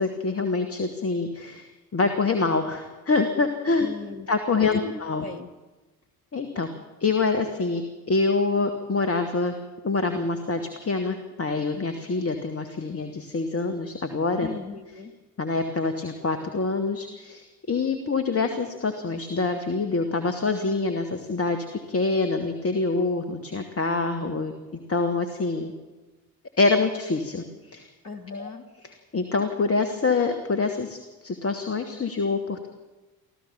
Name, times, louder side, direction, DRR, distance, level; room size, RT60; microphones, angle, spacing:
voice 1, 0.0-3.9 4.3-5.2 6.3-6.7 7.0-7.8 8.1-9.5 9.8-14.5 15.4-24.5 24.9-25.7 26.6-27.9 28.3-28.5 28.8-32.7, left 3 dB, 30° left, 8 dB, 2.4 m, -26 dB
voice 2, 3.8-4.3 4.6-4.9 5.2-5.5 14.4-15.1 28.0-28.6, left 4 dB, 90° left, 10 dB, 1.5 m, -38 dB
25.5 x 15.0 x 7.3 m, 1.2 s
figure-of-eight pair, 45°, 44 cm